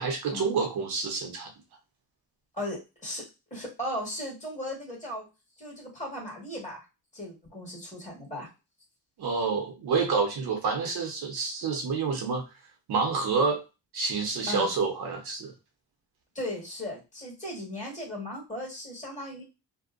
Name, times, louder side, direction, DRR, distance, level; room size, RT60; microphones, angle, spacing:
voice 1, 0.0-1.5 9.2-12.4 12.9-13.6 13.9-15.5, right 4 dB, 75° right, 3 dB, 0.8 m, -28 dB
voice 2, 2.5-3.2 3.5-5.3 5.6-6.8 7.1-8.5 14.5-14.7 16.3-19.4, left 1 dB, 20° left, -4 dB, 1.5 m, -36 dB
2.7 x 2.1 x 2.4 m, 0.27 s
cardioid pair, 125°, 38 cm